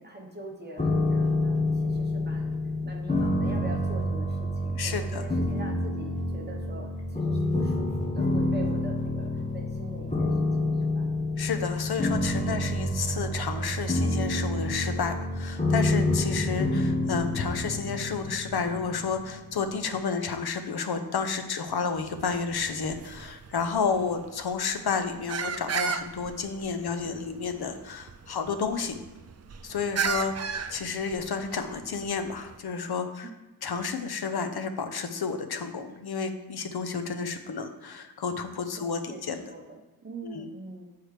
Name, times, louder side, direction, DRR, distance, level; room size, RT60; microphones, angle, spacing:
voice 1, 0.0-2.5 2.8-9.3 9.5-11.0 12.5-12.8 23.8-23.9 33.2-33.3 38.8-40.9, right 2 dB, 25° right, 0 dB, 1.0 m, -43 dB
sound 1, 0.8-19.7, left 1 dB, 20° left, 0.8 m, -28 dB
voice 2, 4.8-5.2 11.4-29.0 29.6-33.3 33.6-39.5 40.2-40.5, left 5 dB, 75° left, 8 dB, 0.7 m, -31 dB
sound 2, 21.9-32.6, right 6 dB, 45° right, 0.4 m, -36 dB
7.9 x 4.7 x 3.3 m, 1.1 s
wide cardioid pair, 90°, 39 cm